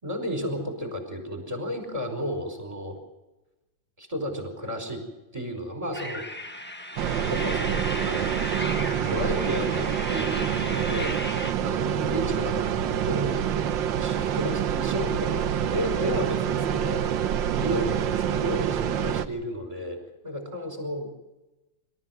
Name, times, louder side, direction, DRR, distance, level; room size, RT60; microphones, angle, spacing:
voice 1, 0.0-3.0 4.0-5.0 5.3-6.2 7.2-8.3 9.0-11.1 11.6-13.4 14.0-15.5 15.7-20.0 20.2-21.1, equal, 15° right, 5 dB, 5.0 m, -33 dB
sound 1, 5.9-11.5, left 1 dB, 5° left, 1.0 m, -35 dB
sound 2, 7.0-19.3, right 9 dB, 80° right, 1.7 m, -27 dB
27.0 x 14.0 x 7.8 m, 1.0 s
omnidirectional pair, 2.0 m